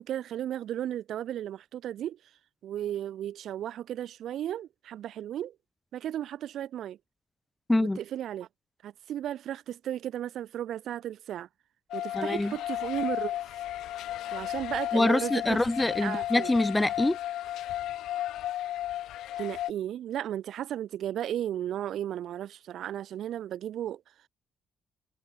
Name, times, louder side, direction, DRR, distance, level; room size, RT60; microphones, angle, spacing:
voice 1, 0.0-2.2 2.6-5.6 5.9-7.0 7.8-8.5 8.8-11.5 11.9-13.4 14.3-15.6 16.0-16.5 19.4-24.0, right 11 dB, 75° right, 7.7 m, -34 dB
sound 1, 11.9-19.7, left 13 dB, 85° left, 4.5 m, -34 dB
voice 2, 12.1-12.5 14.9-17.2, left 2 dB, 15° left, 3.4 m, -25 dB
cardioid pair, 90°, 0 cm